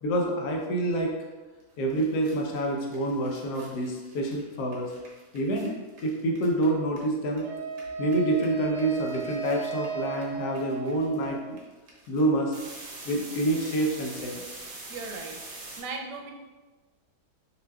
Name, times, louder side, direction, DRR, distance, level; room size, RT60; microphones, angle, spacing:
voice 1, 0.0-1.2 1.8-4.9 5.3-5.7 6.0-7.5 8.0-11.6 12.1-12.5 13.0-14.6, right 1 dB, 75° left, 0 dB, 1.3 m, -27 dB
sound 1, 1.6-1.7 1.9-7.4 7.7-15.8, right 2 dB, 70° right, 1.5 m, -45 dB
Wind instrument woodwind instrument, 7.4-11.6, right 5 dB, 55° right, 1.1 m, -36 dB
voice 2, 14.9-16.3, right 4 dB, 90° right, 2 dB, 1.2 m, -38 dB
6.6 x 2.8 x 2.2 m, 1.3 s
omnidirectional pair, 1.7 m